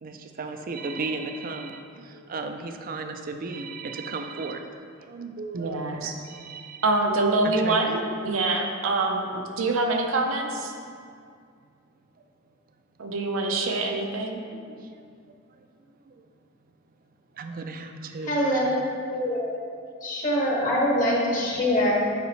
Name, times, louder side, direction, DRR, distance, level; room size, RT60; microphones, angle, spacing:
voice 1, 0.0-4.6 5.0-7.0 7.4-8.0 10.8-10.9 14.5-15.2 15.5-15.7 16.1-16.3 17.3-18.4, right 3 dB, 45° right, 6 dB, 0.4 m, -36 dB
voice 2, 5.5-6.1 6.8-10.7 13.0-14.4, right 2 dB, 80° right, 2 dB, 0.7 m, -25 dB
voice 3, 18.3-18.8 19.1-19.5 20.0-21.9, equal, 40° left, -4 dB, 1.4 m, -24 dB
8.1 x 4.9 x 3.2 m, 2.3 s
head